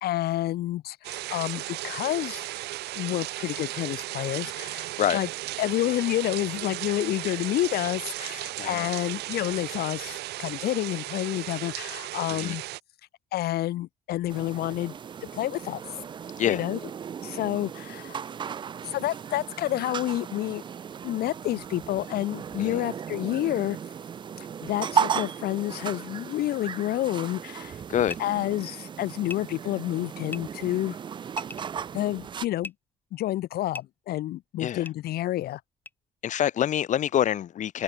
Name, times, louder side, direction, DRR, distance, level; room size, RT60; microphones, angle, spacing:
voice 1, 0.0-2.5 2.9-5.3 5.6-12.6 13.3-14.9 15.3-15.8 16.5-16.8 17.2-18.2 18.8-20.6 21.0-23.8 24.4-27.8 28.2-31.0 31.9-32.7 33.1-35.6, left 14 dB, 70° left, 1.1 m, -29 dB
sound 1, 1.0-12.8, right 17 dB, 80° right, 1.0 m, -35 dB
sound 2, 14.3-32.5, right 7 dB, 30° right, 0.4 m, -35 dB
sound 3, 28.0-28.2 29.3-29.4 30.3-30.4 31.3-31.7 32.6-32.7 33.7-33.8 34.8-34.9 35.8-35.9, left 2 dB, 10° left, 1.4 m, -37 dB
voice 2, 36.2-37.8, left 10 dB, 45° left, 0.7 m, -26 dB
open air
cardioid pair, 110°, 17 cm